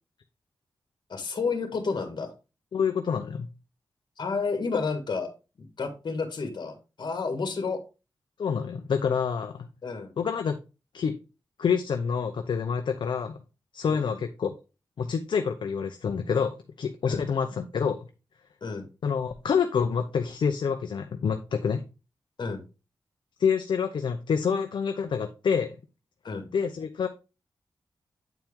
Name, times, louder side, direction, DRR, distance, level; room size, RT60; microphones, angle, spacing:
voice 1, 1.1-2.3 4.2-5.3 5.6-7.8 9.8-10.1 13.8-14.2 17.1-17.3 18.6-18.9 22.4-22.6 26.2-26.5, left 4 dB, 65° left, 6 dB, 1.7 m, -31 dB
voice 2, 2.7-3.5 8.4-9.7 10.2-10.6 10.9-11.2 11.6-13.4 13.7-14.5 15.0-16.5 16.8-18.1 19.0-21.8 23.4-25.8 26.5-27.1, left 6 dB, 80° left, 6 dB, 0.6 m, -27 dB
9.1 x 4.5 x 3.6 m, 0.30 s
cardioid pair, 75°, 8 cm